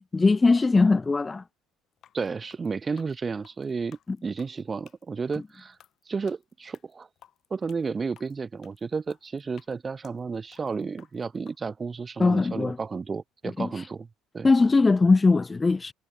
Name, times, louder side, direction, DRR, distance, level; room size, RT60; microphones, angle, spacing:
voice 1, 0.1-1.4 4.1-4.2 12.2-12.8 13.6-13.7 14.4-15.9, left 3 dB, 20° left, 0.4 m, -20 dB
sound 1, 1.9-11.6, left 10 dB, 50° left, 5.0 m, -58 dB
voice 2, 2.1-5.8 6.1-7.1 7.5-14.1 14.3-14.5, right 5 dB, 25° right, 0.8 m, -32 dB
supercardioid pair, 90°, 0 cm